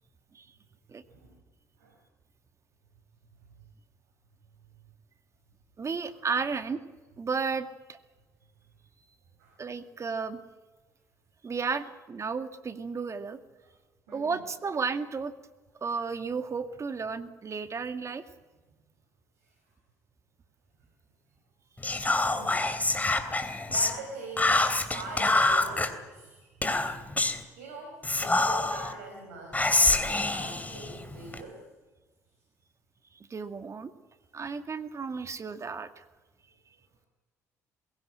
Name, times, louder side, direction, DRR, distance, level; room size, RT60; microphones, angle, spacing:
voice 1, 1.1-1.4 1.8-2.0 6.0-6.2 9.4-9.6 14.1-14.4 19.4-19.5 22.2-22.7 23.3-31.6, right 2 dB, 85° right, 0 dB, 5.0 m, -43 dB
voice 2, 5.8-6.8 7.2-8.0 9.6-10.4 11.4-13.4 14.1-15.3 15.8-18.2 33.3-33.9 34.3-36.0, right 5 dB, 40° right, 9 dB, 2.1 m, -33 dB
Whispering, 21.8-24.0 24.4-25.9 26.6-27.4 28.0-28.9 29.5-31.4, left 2 dB, 20° left, 3.0 m, -26 dB
21.5 x 17.0 x 8.9 m, 1.2 s
hypercardioid pair, 55°, 8 cm